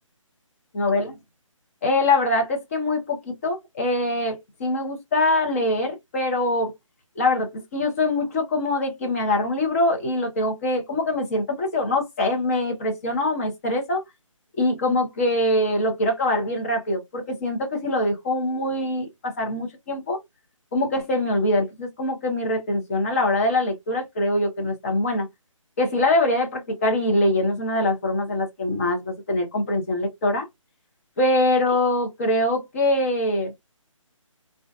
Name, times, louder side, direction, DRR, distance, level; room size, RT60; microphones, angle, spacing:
voice 1, 0.8-1.1 1.8-6.7 7.2-14.0 14.6-20.2 20.7-25.3 25.8-30.5 31.2-33.5, left 1 dB, 25° left, 0.7 m, -23 dB
2.5 x 2.3 x 2.3 m
figure-of-eight pair, 155°, 17 cm